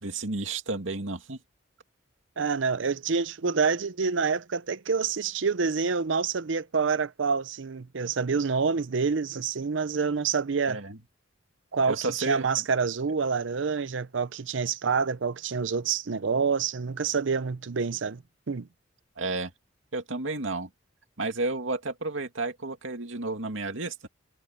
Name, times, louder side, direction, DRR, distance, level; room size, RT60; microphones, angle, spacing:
voice 1, 0.0-1.4 10.7-11.0 11.9-12.5 19.2-19.5 19.9-20.7 21.2-24.1, right 3 dB, 85° right, 2.4 m, -31 dB
voice 2, 2.4-10.8 11.7-12.0 12.3-18.2 18.5-18.7, right 5 dB, 70° right, 0.6 m, -27 dB
head